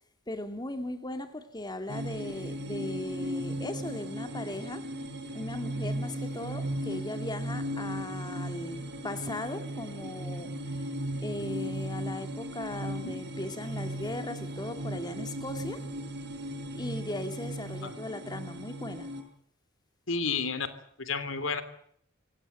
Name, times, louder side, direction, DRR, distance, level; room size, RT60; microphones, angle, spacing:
voice 1, 0.3-4.9 5.3-10.9 11.2-15.9 16.7-19.1, left 1 dB, 20° left, 2.1 m, -38 dB
sound 1, 1.9-19.2, right 1 dB, 60° right, 6.5 m, -36 dB
voice 2, 20.1-20.7 21.0-21.6, left 4 dB, 90° left, 2.8 m, -31 dB
26.0 x 17.5 x 8.0 m
head